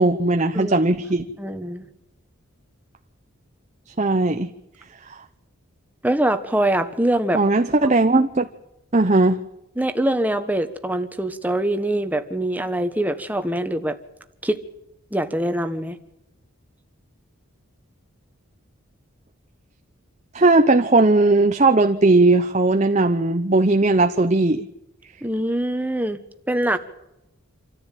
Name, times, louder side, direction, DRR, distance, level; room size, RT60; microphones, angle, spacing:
voice 1, 0.0-1.3 4.0-4.5 7.3-8.5 8.9-9.4 20.3-24.7, right 2 dB, 30° right, 7 dB, 0.8 m, -17 dB
voice 2, 1.4-1.8 6.0-7.4 7.8-8.0 9.8-14.0 14.4-14.6 15.1-16.0 25.2-26.2 26.5-26.8, right 1 dB, 5° right, 8 dB, 1.3 m, -23 dB
26.5 x 14.0 x 9.2 m, 0.90 s
head